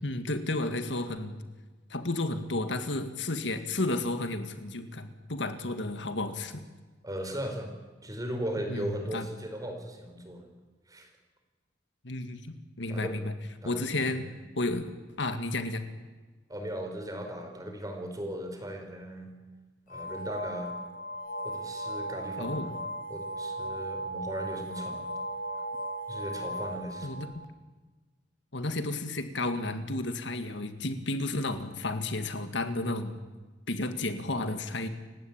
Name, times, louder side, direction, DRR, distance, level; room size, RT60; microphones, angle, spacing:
voice 1, 0.0-1.4 1.9-6.6 8.7-8.9 9.1-9.3 12.0-13.3 13.6-14.2 14.6-14.9 15.2-15.8 22.4-22.7 27.0-27.3 28.5-33.2 33.7-34.9, left 2 dB, 70° left, 8 dB, 2.0 m, -32 dB
voice 2, 7.0-7.7 8.0-10.5 10.9-11.1 12.9-13.2 13.6-14.3 16.5-19.3 19.9-20.7 21.4-22.8 23.1-25.0 26.1-27.2, right 1 dB, 20° right, 5 dB, 4.8 m, -37 dB
sound 1, 19.9-27.4, right 1 dB, 45° left, 1.4 m, -37 dB
29.5 x 17.0 x 8.9 m, 1.3 s
head